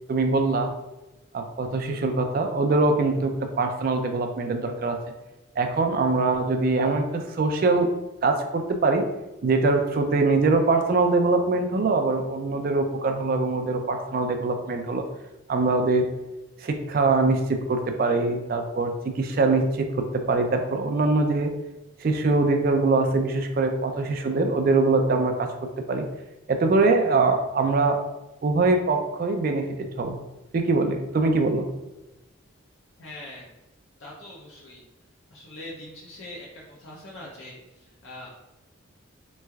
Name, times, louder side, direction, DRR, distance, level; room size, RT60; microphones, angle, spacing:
voice 1, 0.1-0.7 1.3-5.0 5.6-7.9 8.2-9.1 9.4-15.0 15.5-16.0 16.6-21.5 22.0-26.1 26.5-28.0 28.4-29.7 30.0-30.2 30.5-31.7, right 3 dB, 45° right, 5 dB, 0.3 m, -23 dB
voice 2, 33.0-33.5 34.0-34.8 35.3-38.3, left 1 dB, 65° left, -4 dB, 0.6 m, -42 dB
3.4 x 3.1 x 2.3 m, 1.0 s
head